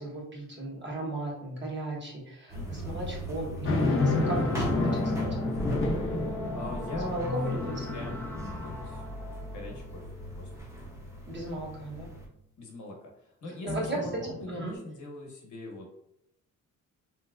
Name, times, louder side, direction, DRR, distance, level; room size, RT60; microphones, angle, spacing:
voice 1, 0.0-5.3 7.1-7.8 11.3-12.1 13.6-14.0 14.5-14.8, right 1 dB, 35° right, -3 dB, 1.1 m, -36 dB
voice 2, 2.5-3.1 6.5-9.1 9.5-10.1 10.3-10.5 12.6-15.9, left 2 dB, 65° left, 0 dB, 1.1 m, -41 dB
sound 1, 2.5-12.3, equal, 10° right, 0.7 m, -38 dB
sound 2, 3.6-9.2 9.7-9.8 13.7-14.7, left 2 dB, 40° left, 0.7 m, -31 dB
sound 3, 3.9-10.8, left 1 dB, 5° left, 0.3 m, -39 dB
3.1 x 2.8 x 2.4 m, 0.78 s
cardioid pair, 125°, 32 cm